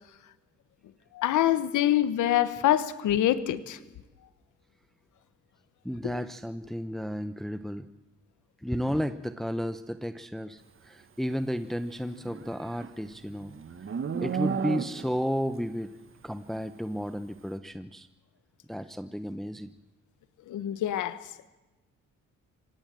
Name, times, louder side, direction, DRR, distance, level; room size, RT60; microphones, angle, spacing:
voice 1, 1.1-3.8 6.0-6.1 20.5-21.5, left 12 dB, 80° left, 14 dB, 1.3 m, -25 dB
voice 2, 5.8-7.9 8.6-13.8 14.2-15.9 16.2-18.1 18.7-19.7, equal, ahead, 10 dB, 0.9 m, -33 dB
Livestock farm animals working animals, 12.1-15.3, right 6 dB, 45° right, 1.7 m, -33 dB
25.5 x 18.0 x 7.7 m, 1.1 s
cardioid pair, 90°, 30 cm